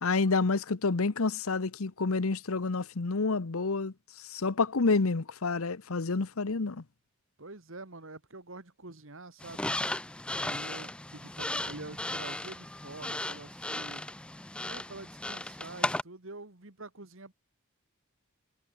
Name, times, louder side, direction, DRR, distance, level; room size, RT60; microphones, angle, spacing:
voice 1, 0.0-6.8, left 3 dB, 75° left, 0.9 m, -29 dB
voice 2, 7.4-9.7 10.3-14.0 14.6-17.3, right 2 dB, 60° right, 2.1 m, -46 dB
sound 1, 9.4-16.0, left 1 dB, 5° left, 0.3 m, -36 dB
head